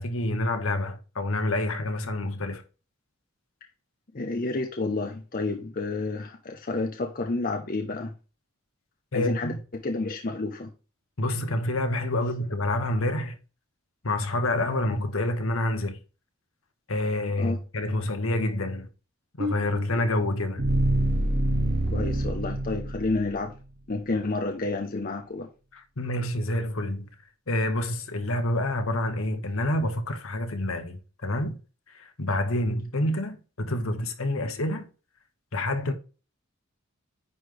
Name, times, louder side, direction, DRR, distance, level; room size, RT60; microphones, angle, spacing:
voice 1, 0.0-2.6 9.1-9.6 11.2-13.4 14.0-16.0 16.9-18.9 19.4-20.7 25.7-27.1 27.5-31.6 31.9-34.9 35.5-35.9, left 1 dB, 70° left, 1.2 m, -28 dB
voice 2, 4.1-8.1 9.1-10.7 17.4-17.6 21.9-23.5 23.9-25.5, left 3 dB, 40° left, 0.7 m, -30 dB
sound 1, 19.4-23.5, right 1 dB, 45° right, 0.8 m, -27 dB
9.9 x 3.3 x 3.8 m
head